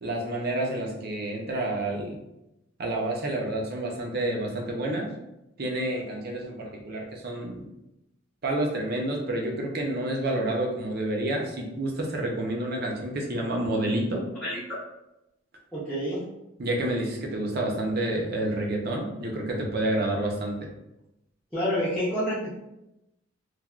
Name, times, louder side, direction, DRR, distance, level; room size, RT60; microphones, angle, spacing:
voice 1, 0.0-2.1 2.8-5.1 5.6-7.7 8.4-14.2 16.6-20.6, right 1 dB, 50° right, 0 dB, 0.6 m, -29 dB
voice 2, 15.7-16.2 21.5-22.6, equal, 5° left, -11 dB, 0.6 m, -28 dB
3.2 x 2.2 x 2.3 m, 0.89 s
head